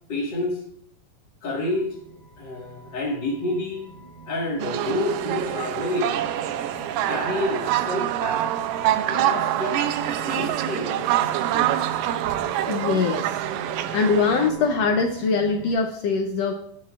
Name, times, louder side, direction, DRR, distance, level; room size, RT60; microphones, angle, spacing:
voice 1, 0.1-0.6 1.4-2.0 2.4-3.8 4.3-6.1 7.1-8.4 9.0-11.3, left 1 dB, 40° left, -4 dB, 1.8 m, -29 dB
sound 1, 1.5-15.7, right 4 dB, 15° left, 2.4 m, -42 dB
sound 2, 4.6-14.5, right 12 dB, 85° right, 2.2 m, -25 dB
voice 2, 12.7-13.3 13.9-16.5, left 4 dB, 80° left, 3 dB, 1.4 m, -22 dB
17.5 x 7.5 x 2.4 m, 0.66 s
omnidirectional pair, 3.8 m